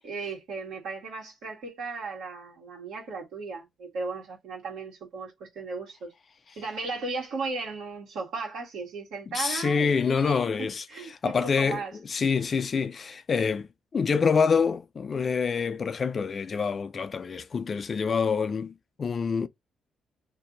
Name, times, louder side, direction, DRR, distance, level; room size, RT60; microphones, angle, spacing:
voice 1, 0.0-6.1 6.6-10.4 10.9-11.9, right 4 dB, 85° right, 1.4 m, -36 dB
voice 2, 9.3-19.5, left 5 dB, 45° left, 0.3 m, -26 dB
2.6 x 2.5 x 3.7 m
cardioid pair, 90°, 0 cm